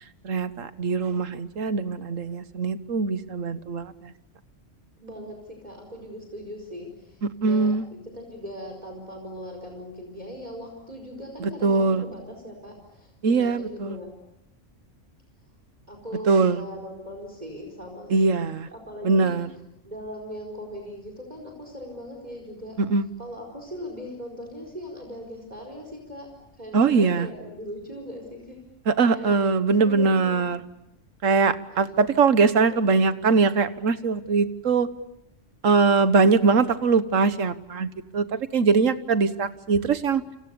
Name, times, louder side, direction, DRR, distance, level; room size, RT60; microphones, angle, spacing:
voice 1, 0.2-4.1 7.2-7.9 11.4-12.0 13.2-14.0 16.3-16.6 18.1-18.7 19.0-19.5 22.8-23.0 26.7-27.3 28.9-30.6 31.2-34.9 35.6-40.2, right 4 dB, 90° right, 12 dB, 1.6 m, -22 dB
voice 2, 5.0-14.1 15.9-19.4 19.8-22.8 23.2-26.3 26.6-28.6 29.1-30.5 31.7-31.9 32.6-32.9 36.2-36.5, equal, 35° right, 2 dB, 5.0 m, -40 dB
29.0 x 27.5 x 6.9 m, 0.85 s
omnidirectional pair, 1.3 m